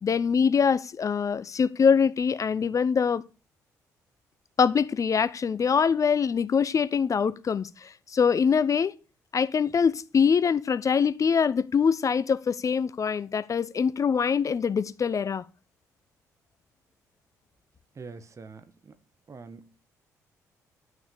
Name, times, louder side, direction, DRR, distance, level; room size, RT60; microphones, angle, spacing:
voice 1, 0.0-3.2 4.6-8.9 9.3-15.4, left 6 dB, 40° left, 0.7 m, -24 dB
voice 2, 17.9-18.9 19.3-19.8, right 4 dB, 35° right, 1.4 m, -45 dB
11.0 x 6.2 x 6.8 m
figure-of-eight pair, 45°, 9 cm